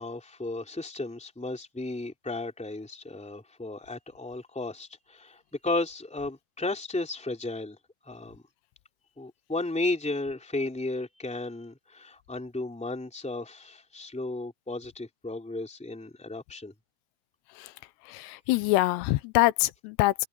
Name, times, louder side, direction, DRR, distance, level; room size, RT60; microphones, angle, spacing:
voice 1, 0.0-7.8 8.0-8.4 9.2-16.7, left 2 dB, ahead, 2.6 m, -34 dB
voice 2, 18.1-20.1, left 18 dB, 90° left, 2.9 m, -24 dB
open air
omnidirectional pair, 4.7 m